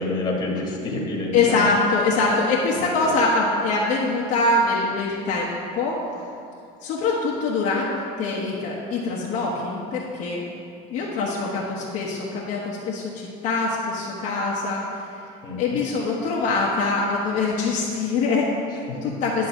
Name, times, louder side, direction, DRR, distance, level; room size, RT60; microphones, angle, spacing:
voice 1, 0.0-1.7 2.7-3.2 15.4-15.8 18.9-19.1, left 2 dB, 25° left, -3 dB, 1.6 m, -28 dB
voice 2, 1.3-6.0 6.8-10.4 10.9-14.8 15.6-19.5, left 3 dB, 50° left, -4 dB, 1.2 m, -24 dB
10.5 x 3.8 x 7.4 m, 2.5 s
cardioid pair, 160°, 17 cm